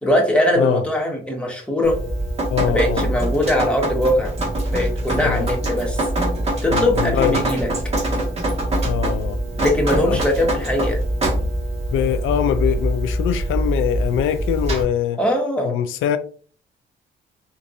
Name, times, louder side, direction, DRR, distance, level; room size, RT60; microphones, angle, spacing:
voice 1, 0.0-2.0 2.7-4.3 4.7-6.0 6.6-7.7 9.6-11.0 15.2-15.8, left 1 dB, 5° left, 1.4 m, -21 dB
Drip, 1.8-14.8, right 1 dB, 30° right, 1.6 m, -23 dB
voice 2, 2.5-3.0 5.2-5.5 6.7-7.4 8.8-9.4 10.0-10.2 11.9-15.2 15.6-16.2, left 10 dB, 85° left, 0.4 m, -23 dB
4.5 x 2.6 x 2.6 m
cardioid pair, 90°, 20 cm